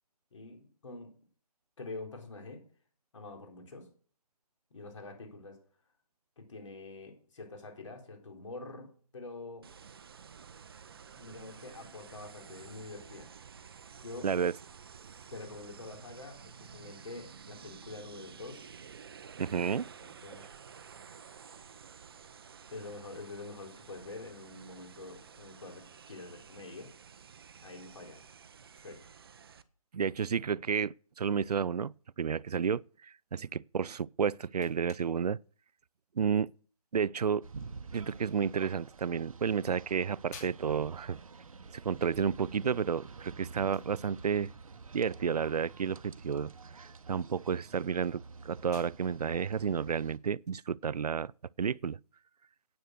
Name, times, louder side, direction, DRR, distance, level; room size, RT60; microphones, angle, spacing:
voice 1, 0.3-1.2 1.8-2.6 3.1-3.9 4.7-5.6 6.4-8.9 9.1-9.7 11.2-13.3 14.0-14.3 15.3-18.7 20.2-20.4 22.7-26.9 27.6-28.2 28.7-29.1, left 3 dB, 50° left, 4.0 m, -46 dB
sound 1, 9.6-29.6, right 6 dB, 40° right, 0.7 m, -52 dB
voice 2, 19.4-19.9 29.9-35.4 36.2-36.5 36.9-37.4 37.9-41.2 41.7-44.5 44.9-46.5 46.8-51.3 51.6-52.0, right 6 dB, 90° right, 0.4 m, -31 dB
sound 2, 34.0-51.6, left 5 dB, 25° left, 2.7 m, -61 dB
sound 3, 37.4-50.2, right 4 dB, 65° right, 1.0 m, -49 dB
9.4 x 9.0 x 6.5 m
figure-of-eight pair, 160°, 19 cm